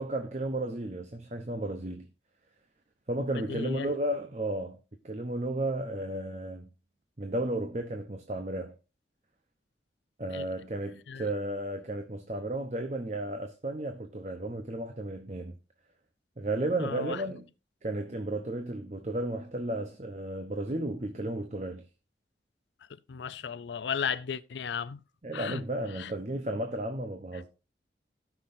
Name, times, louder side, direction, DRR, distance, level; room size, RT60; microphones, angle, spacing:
voice 1, 0.0-2.1 3.1-4.8 5.0-6.7 7.2-8.8 10.2-15.5 16.4-17.5 17.8-21.8 25.2-27.5, right 1 dB, 40° right, 0.8 m, -33 dB
voice 2, 3.5-3.9 10.3-10.4 11.1-11.2 16.8-17.2 23.1-25.0 25.3-25.6 25.9-26.1, left 7 dB, 80° left, 0.4 m, -35 dB
17.0 x 5.9 x 2.6 m
head